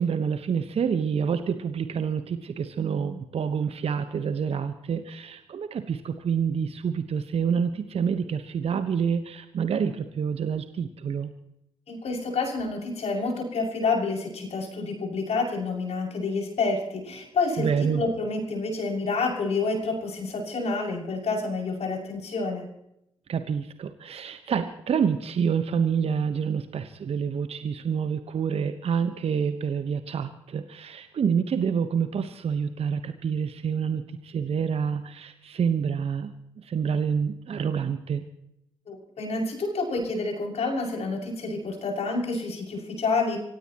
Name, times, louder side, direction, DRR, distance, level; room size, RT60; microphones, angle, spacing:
voice 1, 0.0-11.3 17.6-18.0 23.3-38.2, right 7 dB, 50° right, 10 dB, 1.2 m, -27 dB
voice 2, 11.9-22.7 38.9-43.4, left 3 dB, 55° left, 0 dB, 6.6 m, -28 dB
26.0 x 17.0 x 3.0 m, 0.82 s
hypercardioid pair, 40°, 13 cm